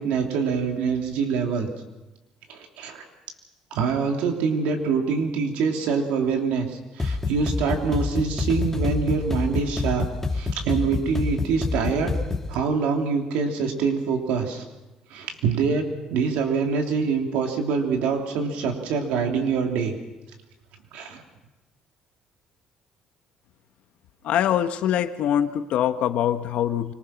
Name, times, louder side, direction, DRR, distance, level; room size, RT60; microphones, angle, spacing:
voice 1, 0.0-1.7 2.5-3.0 3.7-10.1 10.3-12.1 12.5-14.6 15.1-15.8 16.1-19.9 20.9-21.2, right 5 dB, 85° right, 3 dB, 3.1 m, -25 dB
sound 1, 7.0-12.6, left 3 dB, 15° left, 2.0 m, -27 dB
voice 2, 24.2-26.9, left 10 dB, 70° left, 10 dB, 1.2 m, -23 dB
25.0 x 20.0 x 5.9 m, 1.1 s
cardioid pair, 110°, 2 cm